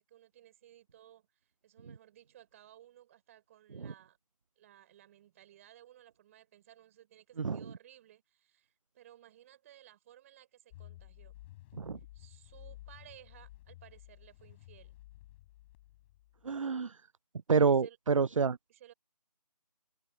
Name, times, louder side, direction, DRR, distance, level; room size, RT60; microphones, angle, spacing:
voice 1, 0.0-4.2 4.6-11.3 12.1-14.9 17.5-18.0 18.7-18.9, right 12 dB, 20° right, 5.3 m, -58 dB
sound 1, 10.7-16.6, left 16 dB, 15° left, 7.3 m, -53 dB
voice 2, 16.4-17.0 17.5-18.6, right 5 dB, 50° right, 0.4 m, -28 dB
figure-of-eight pair, 160°, 21 cm